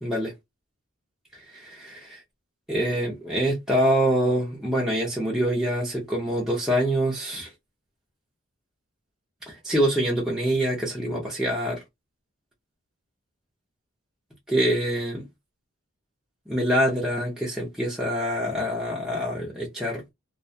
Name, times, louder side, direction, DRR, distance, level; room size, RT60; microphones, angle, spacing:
voice 1, 0.0-0.3 1.3-2.2 2.7-7.5 9.5-11.8 14.5-15.3 16.5-20.0, equal, ahead, 0.6 m, -25 dB
2.3 x 2.2 x 2.7 m
head